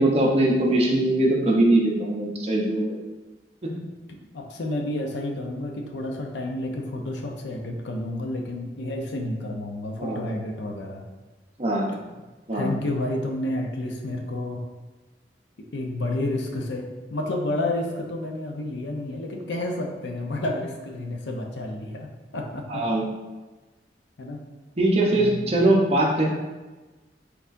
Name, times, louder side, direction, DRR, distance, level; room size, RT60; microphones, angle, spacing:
voice 1, 0.0-3.0 3.6-3.7 10.0-10.2 11.6-11.9 12.5-12.7 22.7-23.0 24.8-26.3, right 1 dB, 35° right, -2 dB, 0.8 m, -21 dB
voice 2, 4.1-11.0 12.5-14.6 15.7-22.8 24.2-24.4 25.1-25.5, left 1 dB, 90° left, 2 dB, 0.6 m, -30 dB
4.3 x 4.0 x 2.6 m, 1.2 s
head